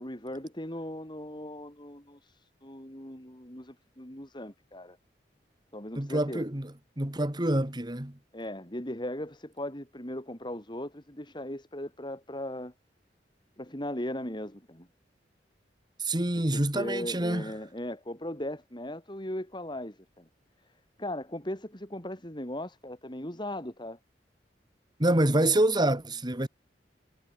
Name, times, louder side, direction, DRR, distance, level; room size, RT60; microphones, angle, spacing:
voice 1, 0.0-5.0 5.7-6.4 8.3-12.7 13.6-14.9 16.3-20.3 21.0-24.0, left 1 dB, 25° left, 6.0 m, -38 dB
voice 2, 6.0-8.2 16.0-17.5 25.0-26.5, right 1 dB, 25° right, 1.9 m, -27 dB
head